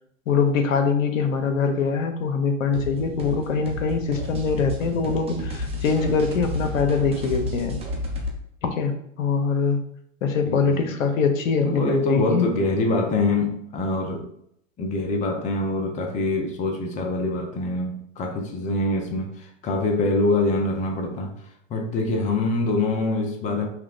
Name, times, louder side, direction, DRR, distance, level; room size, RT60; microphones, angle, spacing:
voice 1, 0.3-7.8 8.6-9.8 10.2-12.5, left 5 dB, 80° left, 0.7 m, -23 dB
sound 1, 2.7-8.3, left 1 dB, 15° right, 0.8 m, -31 dB
voice 2, 10.4-10.8 11.6-14.3 14.8-21.3 21.7-23.7, left 2 dB, 20° left, 0.5 m, -24 dB
5.6 x 2.1 x 2.4 m
hypercardioid pair, 110°, 39 cm